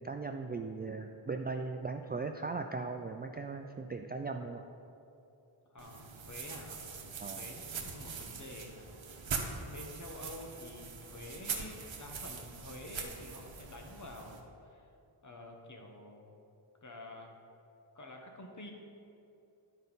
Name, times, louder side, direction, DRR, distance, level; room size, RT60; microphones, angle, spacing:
voice 1, 0.0-4.6 7.2-7.5, right 4 dB, 25° right, 5 dB, 0.3 m, -38 dB
voice 2, 5.7-7.0 7.3-9.3 9.7-14.9 15.2-16.4 16.8-17.3 17.9-18.7, left 2 dB, 35° left, 1 dB, 1.3 m, -49 dB
sound 1, 5.8-14.4, right 5 dB, 70° right, 1.1 m, -42 dB
10.5 x 5.3 x 4.0 m, 2.7 s
cardioid pair, 60°, 48 cm